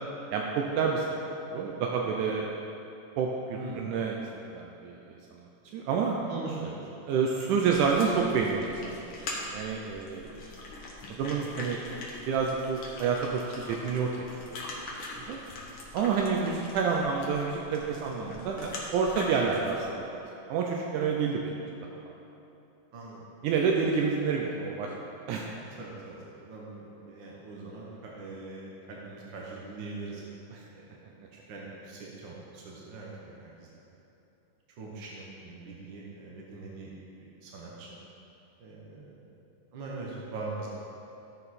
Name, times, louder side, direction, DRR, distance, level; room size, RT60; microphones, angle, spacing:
voice 1, 0.3-1.2 1.5-2.5 3.2-4.3 4.5-6.2 7.1-10.4 11.1-11.8 12.3-14.6 15.2-15.4 15.9-20.2 20.5-21.6 22.1-22.2 23.4-25.5 30.5-30.6, right 5 dB, 80° right, 0 dB, 2.1 m, -29 dB
voice 2, 3.5-3.9 5.7-5.8 6.3-6.9 11.3-11.4 22.9-23.2 25.8-30.2 30.7-33.7 34.8-38.0 38.6-39.3 39.7-40.7, right 3 dB, 60° right, -3 dB, 1.2 m, -42 dB
sound 1, 7.6-19.8, left 2 dB, 55° left, 1.9 m, -42 dB
14.0 x 6.6 x 4.2 m, 2.9 s
omnidirectional pair, 3.6 m